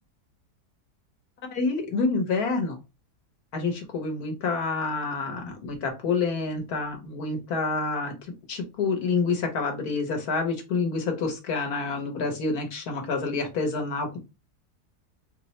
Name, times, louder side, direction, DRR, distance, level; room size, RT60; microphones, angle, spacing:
voice 1, 1.5-2.8 3.5-8.1 8.5-14.2, left 4 dB, 75° left, 3 dB, 1.4 m, -28 dB
4.2 x 2.1 x 2.9 m, 0.27 s
omnidirectional pair, 1.6 m